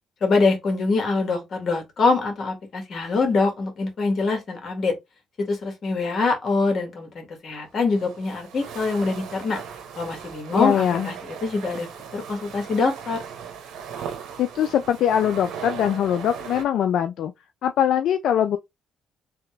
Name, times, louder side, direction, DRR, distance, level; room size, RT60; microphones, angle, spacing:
voice 1, 0.2-4.9 5.4-9.6 10.0-13.2, left 3 dB, 50° left, 1.8 m, -24 dB
sound 1, 7.6-16.6, right 7 dB, 85° right, 0.8 m, -38 dB
voice 2, 10.5-11.1 14.4-17.3 17.6-18.6, left 9 dB, 75° left, 0.3 m, -22 dB
3.4 x 2.9 x 3.2 m
cardioid pair, 90°, 0 cm